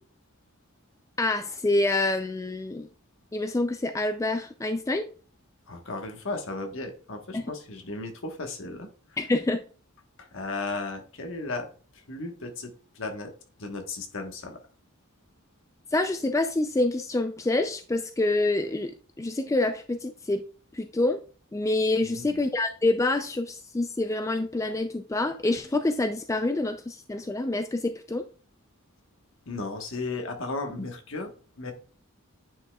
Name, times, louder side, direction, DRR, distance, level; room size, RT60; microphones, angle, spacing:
voice 1, 1.2-2.9 3.3-5.1 7.3-7.5 9.2-9.6 15.9-20.4 20.7-21.2 21.5-28.3, left 2 dB, 15° left, 7 dB, 0.3 m, -27 dB
voice 2, 5.7-8.9 10.2-13.3 13.6-14.6 22.0-22.4 29.5-31.7, left 3 dB, 60° left, 4 dB, 1.3 m, -35 dB
9.3 x 5.3 x 2.3 m, 0.39 s
head